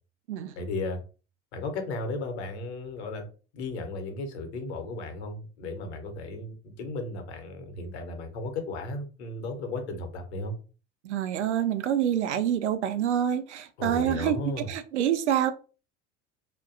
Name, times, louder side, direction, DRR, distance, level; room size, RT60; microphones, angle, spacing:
voice 1, 0.6-1.0 1.5-3.2 3.5-10.5 13.8-14.7, left 2 dB, 65° left, 5 dB, 0.8 m, -35 dB
voice 2, 11.0-14.4 14.7-15.5, right 10 dB, 70° right, 10 dB, 0.5 m, -26 dB
2.6 x 2.2 x 2.5 m, 0.35 s
figure-of-eight pair, 70°, 36 cm